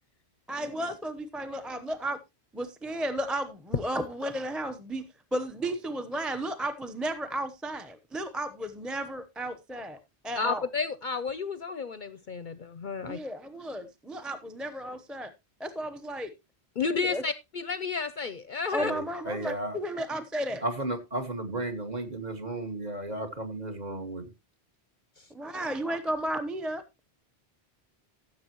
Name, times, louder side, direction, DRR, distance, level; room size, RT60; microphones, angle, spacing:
voice 1, 0.5-2.2 2.5-5.0 5.3-10.0 10.2-10.6 13.0-15.3 15.6-16.3 17.0-17.2 18.7-20.6 25.3-26.8, right 1 dB, ahead, 0.7 m, -33 dB
voice 2, 10.4-13.2 16.8-18.9, left 5 dB, 50° left, 0.7 m, -31 dB
voice 3, 18.8-19.8 20.6-24.2, right 2 dB, 40° right, 1.7 m, -34 dB
15.0 x 7.5 x 3.0 m
omnidirectional pair, 1.1 m